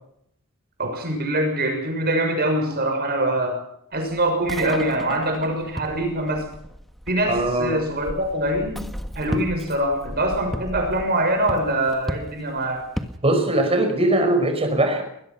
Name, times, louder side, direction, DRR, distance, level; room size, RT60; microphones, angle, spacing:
voice 1, 0.8-3.6 3.9-6.5 7.1-8.9 9.1-12.8, right 1 dB, 45° right, 3 dB, 6.5 m, -23 dB
sound 1, 3.9-13.2, equal, ahead, 1.5 m, -35 dB
voice 2, 7.3-7.8 13.2-15.0, right 1 dB, 25° right, 6 dB, 5.3 m, -20 dB
22.5 x 21.0 x 5.9 m, 0.72 s
head